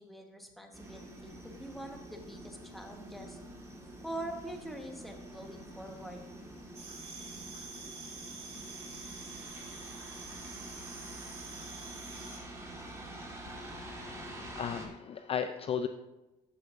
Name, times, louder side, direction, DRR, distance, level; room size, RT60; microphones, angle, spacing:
voice 1, 0.0-3.4 4.0-6.2, right 1 dB, ahead, 2 dB, 1.2 m, -44 dB
sound 1, 0.7-14.9, right 1 dB, 15° right, 1.6 m, -47 dB
sound 2, 6.7-12.4, right 4 dB, 40° right, 2.5 m, -47 dB
voice 2, 13.5-15.9, left 7 dB, 35° left, 8 dB, 0.4 m, -36 dB
12.5 x 5.8 x 2.6 m, 1.1 s
cardioid pair, 110°, 17 cm